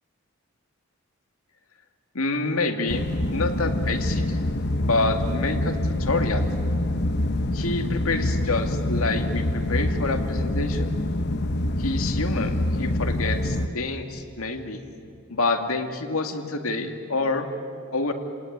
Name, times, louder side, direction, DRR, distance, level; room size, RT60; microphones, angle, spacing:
voice 1, 2.1-4.4 4.8-6.4 7.5-11.0 11.8-14.8 15.3-17.5 17.9-18.1, left 3 dB, 85° left, 5 dB, 2.3 m, -27 dB
sound 1, 2.9-13.7, left 1 dB, 50° left, 1.0 m, -26 dB
29.5 x 18.5 x 9.5 m, 2.5 s
head